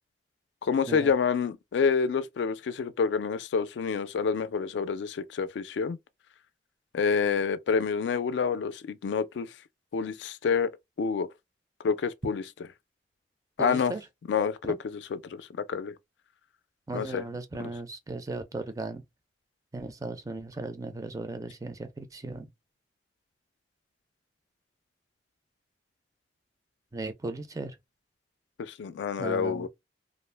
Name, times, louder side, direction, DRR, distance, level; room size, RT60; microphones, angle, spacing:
voice 1, 0.6-6.0 6.9-9.5 9.9-10.7 11.0-11.3 11.8-12.4 13.6-13.9 14.3-15.9 16.9-17.2 17.6-17.7 28.6-29.7, left 5 dB, 80° left, 0.3 m, -28 dB
voice 2, 13.6-14.0 14.7-14.8 16.9-19.0 19.7-22.5 26.9-27.8 29.2-29.7, right 2 dB, 20° right, 0.4 m, -37 dB
2.5 x 2.0 x 3.2 m
head